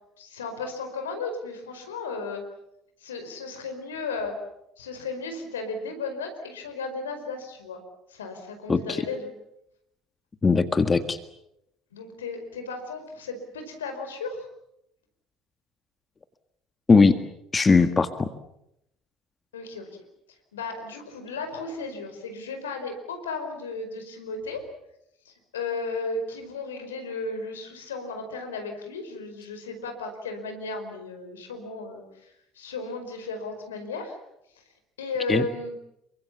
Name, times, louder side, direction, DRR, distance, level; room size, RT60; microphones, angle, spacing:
voice 1, 0.2-2.4 3.0-4.4 4.8-7.8 8.1-9.3 11.9-14.4 19.5-19.9 20.5-24.7 25.2-34.2 35.0-35.7, left 3 dB, 80° left, 6 dB, 4.9 m, -35 dB
voice 2, 8.7-9.0 10.4-11.2 16.9-17.2 17.5-18.3 35.3-35.5, left 4 dB, 25° left, 10 dB, 1.8 m, -19 dB
28.0 x 24.5 x 7.2 m, 0.80 s
hypercardioid pair, 60°, 0 cm